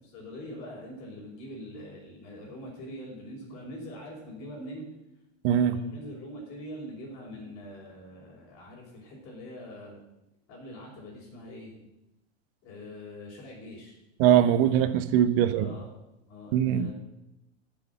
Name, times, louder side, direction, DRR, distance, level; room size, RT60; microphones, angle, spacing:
voice 1, 0.0-4.9 5.7-10.0 10.5-11.8 12.6-14.0 15.4-15.9 16.3-16.9, equal, 45° left, -6 dB, 4.8 m, -43 dB
voice 2, 5.4-5.8 14.2-15.7 16.5-16.9, right 10 dB, 55° right, 12 dB, 1.1 m, -22 dB
13.5 x 7.0 x 6.8 m, 0.93 s
supercardioid pair, 135°, 33 cm